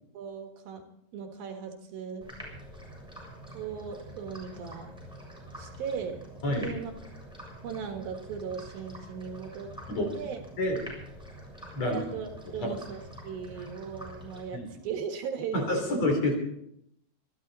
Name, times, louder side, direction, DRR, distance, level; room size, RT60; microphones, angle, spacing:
voice 1, 0.1-0.8 1.1-2.3 3.5-4.9 5.6-6.2 6.5-6.9 7.6-9.7 10.1-10.4 11.8-16.0, right 6 dB, 65° right, 4 dB, 3.2 m, -37 dB
sound 1, 2.2-14.9, equal, ahead, 6.5 m, -46 dB
voice 2, 15.5-16.3, left 1 dB, 45° left, 3 dB, 4.3 m, -27 dB
26.0 x 12.5 x 4.1 m, 0.75 s
omnidirectional pair, 4.7 m